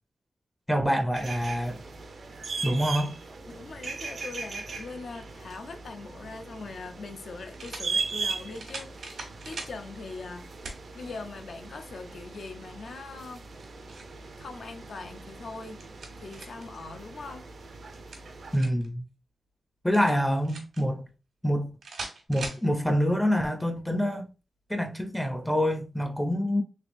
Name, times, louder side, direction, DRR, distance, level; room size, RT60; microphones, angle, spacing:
voice 1, 0.7-1.8 2.6-3.1 18.5-19.0 19.8-21.1 21.4-21.7 22.3-24.3 24.7-26.6, equal, 5° left, 0.5 m, -26 dB
sound 1, 1.1-18.6, right 4 dB, 60° right, 0.5 m, -39 dB
voice 2, 3.5-13.4 14.4-15.8 16.2-17.5, left 3 dB, 70° left, 0.5 m, -42 dB
sound 2, 6.3-6.4 7.5-7.9 8.5-9.8 10.6-10.8 11.4-11.5 13.4-14.2 15.5-16.7 17.9-18.9 19.9-20.8 21.8-22.6, right 3 dB, 85° right, 1.1 m, -41 dB
3.4 x 3.1 x 2.5 m
wide cardioid pair, 115°, 0 cm